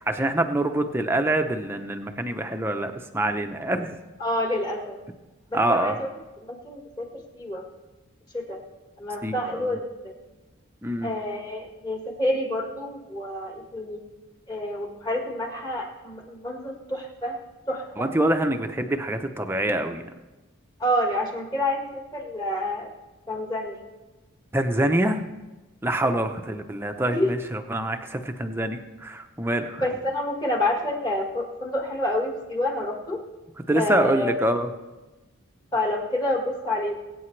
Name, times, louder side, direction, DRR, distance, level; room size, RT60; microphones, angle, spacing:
voice 1, 0.0-4.0 5.5-6.0 9.2-9.8 10.8-11.1 18.0-20.0 24.5-25.2 25.8-29.9 33.7-34.7, right 1 dB, 10° right, 6 dB, 0.7 m, -25 dB
voice 2, 4.2-5.0 5.5-6.1 6.4-7.1 7.3-7.6 8.3-8.6 9.0-10.1 11.0-14.0 14.5-17.4 17.7-18.1 20.8-22.9 23.3-23.8 26.0-26.1 27.0-27.3 29.8-33.2 33.7-34.4 35.7-36.9, left 1 dB, 20° left, 1 dB, 1.6 m, -28 dB
22.5 x 8.6 x 3.3 m, 1.1 s
head